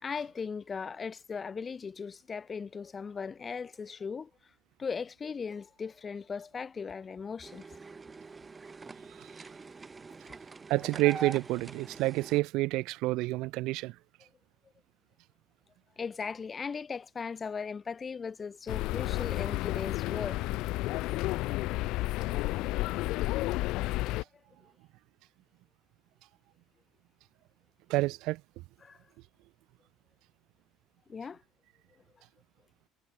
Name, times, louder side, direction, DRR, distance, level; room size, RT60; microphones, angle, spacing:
voice 1, 0.0-4.3 4.8-7.6 16.0-20.5 28.8-29.0 31.1-31.4, left 5 dB, 25° left, 4.8 m, -38 dB
sound 1, 7.4-12.4, right 4 dB, 20° right, 3.1 m, -44 dB
voice 2, 10.7-13.9 27.9-28.4, right 20 dB, 75° right, 0.6 m, -29 dB
sound 2, 18.7-24.2, left 19 dB, 75° left, 0.9 m, -31 dB
cardioid pair, 120°, 0 cm